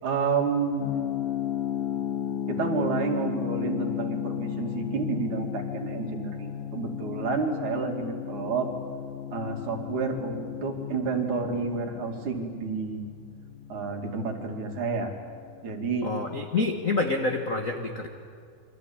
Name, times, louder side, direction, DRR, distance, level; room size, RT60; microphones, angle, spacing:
voice 1, 0.0-0.9 2.5-8.7 9.3-13.1 13.7-15.1 15.6-16.1, right 4 dB, 60° right, 3 dB, 4.0 m, -30 dB
sound 1, 0.8-15.6, left 9 dB, 85° left, 3.0 m, -34 dB
voice 2, 16.0-18.1, left 3 dB, 45° left, 3 dB, 1.1 m, -27 dB
28.0 x 24.0 x 8.8 m, 2.2 s
omnidirectional pair, 4.0 m